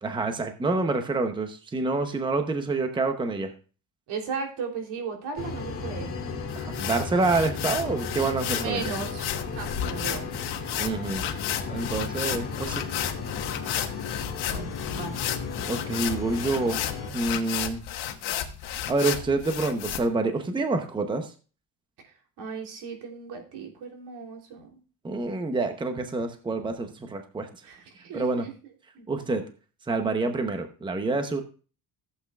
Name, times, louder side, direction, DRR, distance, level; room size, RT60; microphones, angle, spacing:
voice 1, 0.0-3.5 6.6-8.9 10.8-11.3 11.7-12.8 15.7-16.8 17.1-17.8 18.9-21.3 25.0-27.5 28.1-28.5 29.1-29.5 29.9-31.4, right 3 dB, 10° right, 6 dB, 0.8 m, -27 dB
voice 2, 4.1-6.2 8.5-10.3 14.5-15.2 22.0-24.8 27.6-28.5 28.9-29.1, right 5 dB, 85° right, 2 dB, 3.4 m, -36 dB
sound 1, 5.4-17.1, left 4 dB, 35° left, 1.8 m, -35 dB
sound 2, 6.5-20.0, left 10 dB, 75° left, 1.4 m, -33 dB
15.0 x 8.2 x 2.4 m, 0.36 s
cardioid pair, 170°, 39 cm